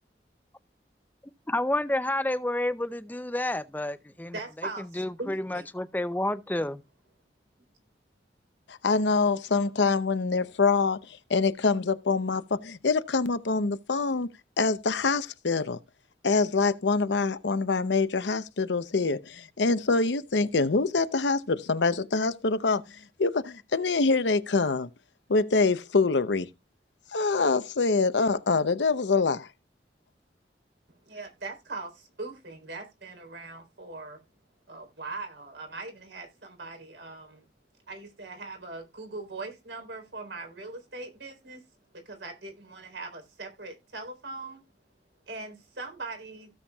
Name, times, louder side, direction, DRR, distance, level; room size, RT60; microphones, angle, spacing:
voice 1, 1.5-4.3 5.0-6.8, left 1 dB, 10° left, 0.5 m, -29 dB
voice 2, 4.3-5.7 31.1-34.2 34.7-37.4 37.9-41.6 42.1-44.6 45.3-46.5, right 3 dB, 90° right, 3.7 m, -40 dB
voice 3, 8.7-11.0 11.3-14.3 14.6-15.8 16.2-22.8 23.2-24.9 25.3-26.5 27.1-29.5, left 4 dB, 90° left, 0.7 m, -25 dB
16.0 x 7.1 x 2.3 m
head